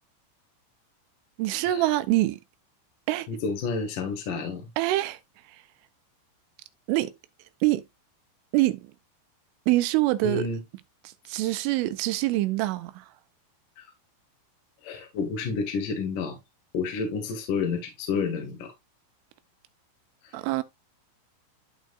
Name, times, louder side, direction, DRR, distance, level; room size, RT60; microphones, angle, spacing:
voice 1, 1.4-2.4 3.1-3.3 4.8-5.2 6.9-7.1 7.6-7.8 8.5-8.9 9.7-10.5 11.0-13.1 20.3-20.6, right 16 dB, 85° right, 3.3 m, -25 dB
voice 2, 3.3-4.7 10.2-10.6 13.8-13.9 14.8-16.4 16.7-18.7, left 5 dB, 55° left, 2.7 m, -30 dB
12.5 x 4.7 x 2.4 m
omnidirectional pair, 5.6 m